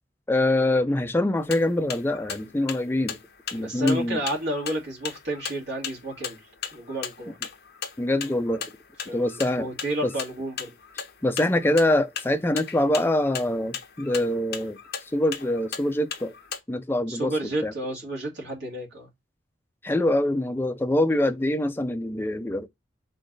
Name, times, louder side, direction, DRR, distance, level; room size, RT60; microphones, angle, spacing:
voice 1, 0.3-3.2 3.5-4.2 8.0-8.6 9.1-9.7 10.0-10.1 11.2-14.8 15.1-16.3 16.7-17.3 17.6-17.7 19.8-22.7, left 1 dB, 10° left, 0.3 m, -24 dB
sound 1, 1.4-16.6, left 7 dB, 50° left, 0.8 m, -37 dB
voice 2, 3.6-6.4 6.7-7.4 9.1-10.7 17.1-19.1, right 1 dB, 65° right, 2.2 m, -31 dB
3.8 x 3.4 x 3.8 m
head